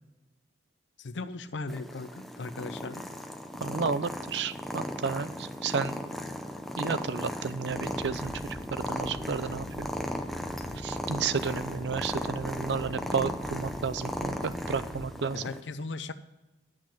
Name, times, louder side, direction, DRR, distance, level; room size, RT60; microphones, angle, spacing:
voice 1, 1.0-3.1 15.3-16.1, left 3 dB, 90° left, 12 dB, 0.6 m, -37 dB
Purr, 1.7-15.6, equal, ahead, 0.6 m, -36 dB
voice 2, 3.6-6.0 6.8-9.9 10.8-15.4, right 5 dB, 75° right, 14 dB, 0.5 m, -32 dB
sound 1, 7.7-15.1, left 1 dB, 40° left, 1.2 m, -44 dB
10.5 x 6.0 x 6.3 m, 1.1 s
head